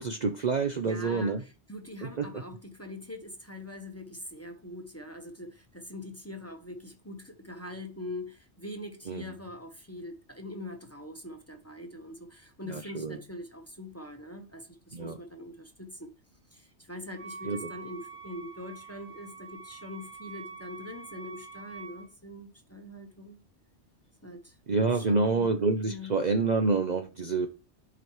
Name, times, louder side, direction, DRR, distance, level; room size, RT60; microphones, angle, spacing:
voice 1, 0.0-1.4 2.0-2.3 9.1-9.2 12.7-13.2 14.9-15.2 17.4-17.6 24.7-27.5, right 4 dB, 45° right, 0.6 m, -27 dB
voice 2, 0.8-16.1 16.5-23.4 24.2-24.5 24.9-25.5 25.8-26.1, left 1 dB, 15° left, 0.9 m, -43 dB
Wind instrument woodwind instrument, 17.1-22.1, right 5 dB, 70° right, 1.7 m, -45 dB
11.0 x 5.0 x 3.1 m
omnidirectional pair, 1.2 m